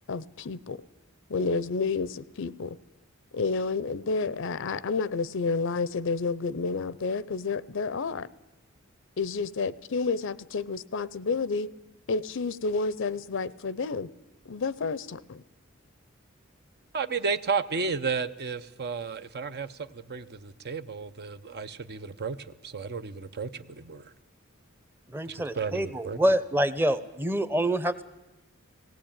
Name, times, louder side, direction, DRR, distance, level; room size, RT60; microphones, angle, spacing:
voice 1, 0.1-0.8 1.3-2.8 3.3-8.3 9.2-11.7 12.1-14.1 14.4-15.4, left 4 dB, 65° left, 19 dB, 0.6 m, -30 dB
voice 2, 16.9-24.1 25.3-26.2, right 5 dB, 50° right, 12 dB, 0.7 m, -33 dB
voice 3, 25.1-28.0, right 1 dB, 10° right, 14 dB, 0.8 m, -26 dB
18.5 x 17.5 x 8.8 m, 1.0 s
head